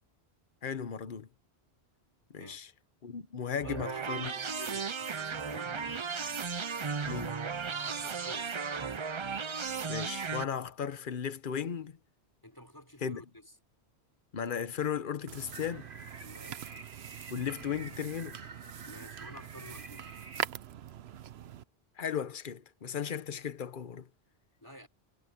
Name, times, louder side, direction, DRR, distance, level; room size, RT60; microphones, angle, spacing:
voice 1, 0.6-1.3 2.3-2.7 3.0-4.3 7.1-7.4 9.9-11.9 13.0-13.2 14.3-15.9 17.3-18.4 22.0-24.1, left 7 dB, 55° left, 1.1 m, -36 dB
voice 2, 3.6-6.1 7.9-8.6 12.4-13.5 16.2-16.8 18.8-20.1 24.6-24.9, left 1 dB, 20° left, 5.6 m, -50 dB
sound 1, 3.6-10.4, right 5 dB, 35° right, 0.5 m, -35 dB
sound 2, 15.3-21.6, right 10 dB, 75° right, 0.9 m, -43 dB
sound 3, 15.5-20.4, right 3 dB, 55° right, 2.4 m, -50 dB
omnidirectional pair, 1.1 m